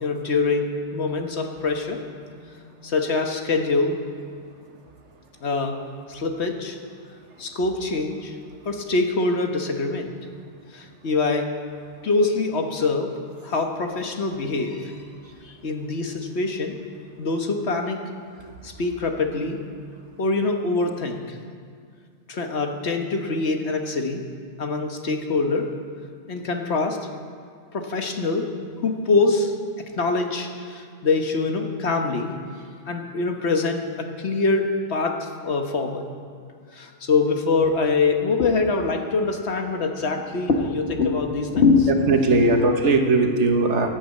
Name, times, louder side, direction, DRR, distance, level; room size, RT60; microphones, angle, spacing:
voice 1, 0.0-2.0 2.3-2.5 2.8-4.0 5.4-5.8 6.1-6.8 7.4-8.4 8.6-10.1 10.7-11.5 12.0-13.1 13.4-15.0 15.4-16.8 17.2-18.0 18.6-19.6 20.2-21.4 22.3-24.2 24.6-25.7 26.3-27.1 27.7-32.3 32.9-36.1 36.7-42.4 42.7-42.8, left 3 dB, 65° left, 4 dB, 1.4 m, -24 dB
voice 2, 42.1-43.9, right 3 dB, 75° right, 4 dB, 1.6 m, -19 dB
12.0 x 10.5 x 8.2 m, 2.2 s
omnidirectional pair, 1.2 m